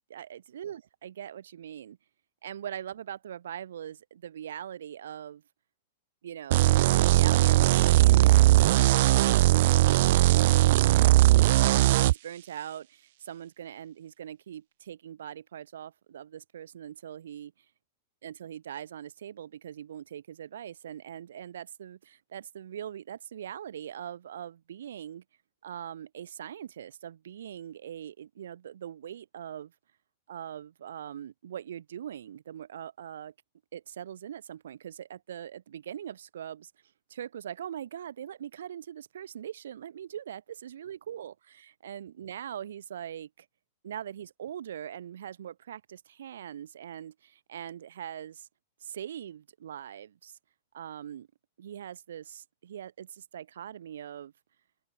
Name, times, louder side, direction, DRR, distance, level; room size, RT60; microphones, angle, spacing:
voice 1, 0.0-2.0 2.4-5.4 6.2-6.7 7.0-10.8 11.5-17.5 18.2-25.2 25.6-29.7 30.3-33.3 33.7-36.7 37.1-43.5 43.8-48.5 48.8-50.4 50.7-51.3 51.6-54.3, right 10 dB, 85° right, 4.4 m, -42 dB
sound 1, 6.5-12.1, right 16 dB, 50° right, 0.6 m, -20 dB
open air
supercardioid pair, 175°, 0 cm